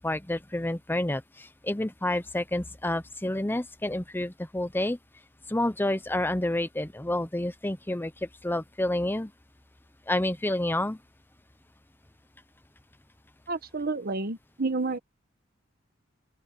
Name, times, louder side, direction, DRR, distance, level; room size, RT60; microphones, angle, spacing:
voice 1, 0.0-5.0 5.5-9.3 10.1-11.0, left 1 dB, 10° left, 0.9 m, -29 dB
voice 2, 13.5-15.0, right 3 dB, 50° right, 1.3 m, -30 dB
open air
head